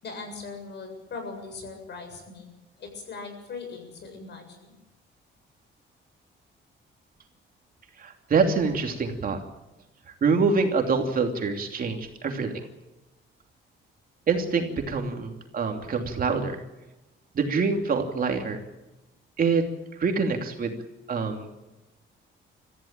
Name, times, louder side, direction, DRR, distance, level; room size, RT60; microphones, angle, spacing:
voice 1, 0.0-4.8, left 4 dB, 55° left, 5 dB, 7.5 m, -40 dB
voice 2, 8.0-9.4 10.2-12.7 14.3-16.6 17.3-18.6 19.4-19.6 20.0-20.7 21.1-21.5, right 4 dB, 45° right, 4 dB, 3.0 m, -25 dB
25.5 x 15.0 x 9.1 m, 1.0 s
cardioid pair, 145°, 21 cm